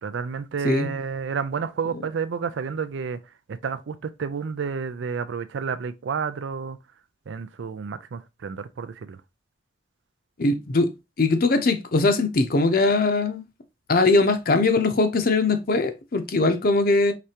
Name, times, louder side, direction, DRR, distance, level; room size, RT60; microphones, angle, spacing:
voice 1, 0.0-3.2 3.5-6.8 7.3-9.2, right 6 dB, 90° right, 0.4 m, -30 dB
voice 2, 10.4-10.9 11.2-13.4 13.9-17.1, left 3 dB, 50° left, 0.6 m, -21 dB
4.9 x 3.3 x 2.8 m
head